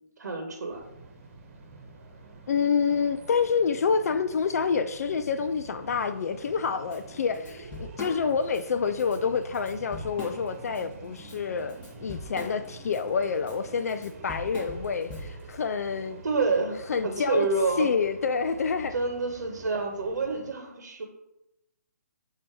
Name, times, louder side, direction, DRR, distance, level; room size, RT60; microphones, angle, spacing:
voice 1, 0.2-0.9 16.2-17.9 18.9-21.0, right 3 dB, 70° right, 1.1 m, -28 dB
sound 1, 0.7-20.5, right 3 dB, 45° right, 1.1 m, -47 dB
voice 2, 2.5-16.2 16.9-17.5 17.8-18.9, left 5 dB, 60° left, 0.3 m, -28 dB
Drum kit / Drum, 6.9-7.0 7.3-8.6 9.0-9.2 9.5-10.8 11.2-15.5, left 1 dB, 15° left, 1.6 m, -41 dB
7.4 x 2.8 x 4.8 m
figure-of-eight pair, 145°, 10 cm